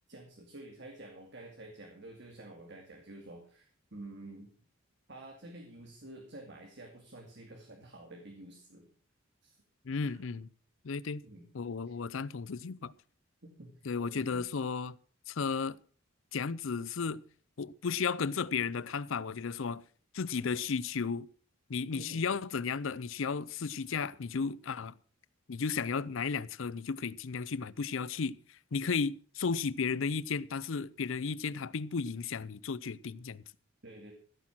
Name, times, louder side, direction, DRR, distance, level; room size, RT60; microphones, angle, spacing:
voice 1, 0.1-4.5 5.1-8.9 9.4-9.6 10.0-10.2 11.2-11.5 13.4-13.7 14.0-14.5 21.9-22.2 33.8-34.1, right 1 dB, 55° right, 2.4 m, -49 dB
voice 2, 9.8-10.5 10.8-11.2 11.5-12.9 13.8-15.0 15.3-15.8 16.3-17.2 17.6-19.8 20.1-21.3 21.7-24.9 25.5-28.4 28.7-33.4, left 5 dB, 65° left, 0.5 m, -34 dB
15.0 x 8.7 x 6.1 m
head